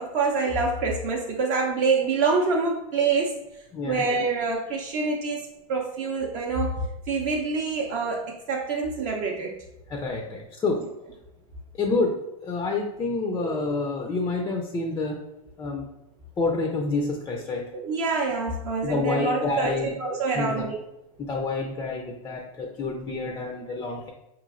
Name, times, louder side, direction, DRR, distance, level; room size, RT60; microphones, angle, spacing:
voice 1, 0.0-9.6 13.3-13.5 17.7-19.7 20.0-20.8, right 4 dB, 45° right, -1 dB, 0.5 m, -26 dB
voice 2, 3.7-4.0 9.9-10.8 11.7-12.2 12.4-15.2 15.6-15.8 16.4-17.7 18.8-20.0 20.4-20.6 21.2-24.1, left 3 dB, 15° left, 1 dB, 0.4 m, -28 dB
4.6 x 3.0 x 2.4 m, 0.88 s
hypercardioid pair, 125°, 19 cm